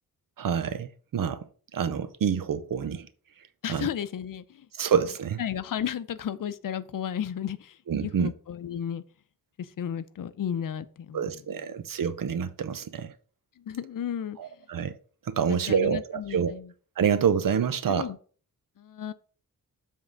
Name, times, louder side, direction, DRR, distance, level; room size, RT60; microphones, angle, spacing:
voice 1, 0.4-1.4 1.7-3.1 3.7-3.9 4.8-5.4 7.9-8.3 11.1-13.1 14.4-14.9 15.3-16.5 17.0-18.1, right 7 dB, 65° right, 0.7 m, -27 dB
voice 2, 3.6-4.7 5.4-9.0 9.6-11.3 13.6-14.4 15.5-16.7 17.9-18.2 18.8-19.1, left 9 dB, 65° left, 0.6 m, -33 dB
7.3 x 3.7 x 6.2 m
wide cardioid pair, 130°, 36 cm